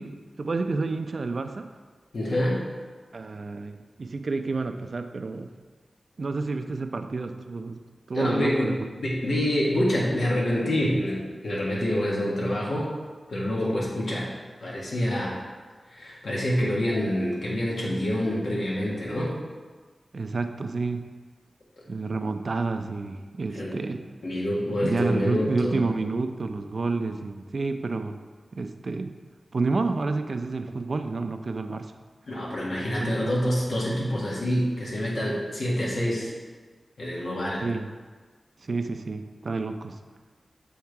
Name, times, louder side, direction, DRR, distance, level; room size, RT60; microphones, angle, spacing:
voice 1, 0.0-1.7 3.1-5.5 6.2-7.8 8.1-8.9 20.1-21.1 21.9-24.1 24.8-28.2 28.5-29.1 29.5-31.9 33.0-33.3 37.6-37.9 38.6-40.0, right 3 dB, 65° right, 7 dB, 0.4 m, -29 dB
voice 2, 2.1-2.6 8.1-12.9 13.3-14.3 14.6-15.4 15.9-19.4 23.5-23.8 24.2-25.9 32.3-36.3 37.0-37.6, equal, 75° left, -5 dB, 1.6 m, -27 dB
7.3 x 3.6 x 4.7 m, 1.4 s
wide cardioid pair, 65°, 0 cm